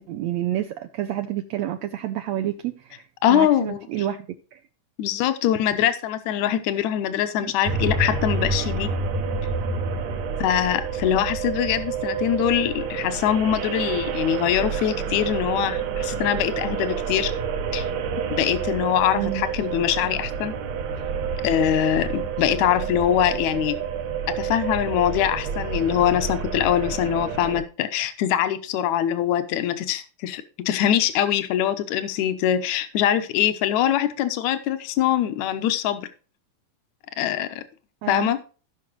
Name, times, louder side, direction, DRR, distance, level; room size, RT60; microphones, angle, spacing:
voice 1, 0.0-4.2 4.5-4.6 7.4-7.5 19.1-19.4 38.0-38.4, right 12 dB, 80° right, 1.5 m, -29 dB
voice 2, 3.2-3.8 5.0-8.9 10.4-17.3 17.7-17.9 18.3-20.5 21.4-23.8 24.4-36.0 37.2-37.6 38.1-38.4, left 11 dB, 70° left, 2.0 m, -23 dB
sound 1, 7.7-27.6, right 5 dB, 65° right, 2.1 m, -28 dB
16.5 x 5.9 x 3.1 m
omnidirectional pair, 3.9 m